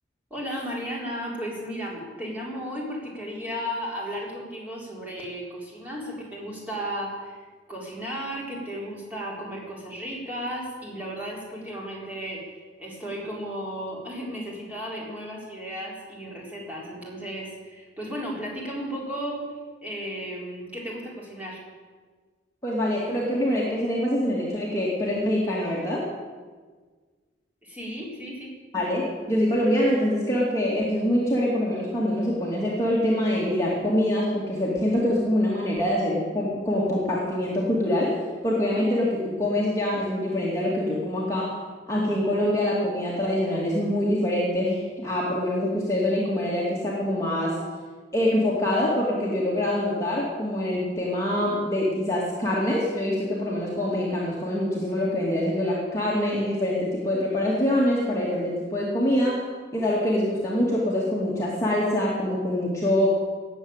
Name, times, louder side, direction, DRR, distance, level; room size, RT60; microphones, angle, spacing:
voice 1, 0.3-12.5 12.8-19.4 19.8-21.6 27.6-28.5, equal, 10° right, -4 dB, 4.3 m, -34 dB
voice 2, 22.6-26.1 28.7-38.2 38.4-41.6 41.9-47.6 48.1-59.4 59.7-63.1, left 1 dB, 15° left, -5 dB, 2.4 m, -25 dB
18.5 x 7.8 x 8.8 m, 1.5 s
head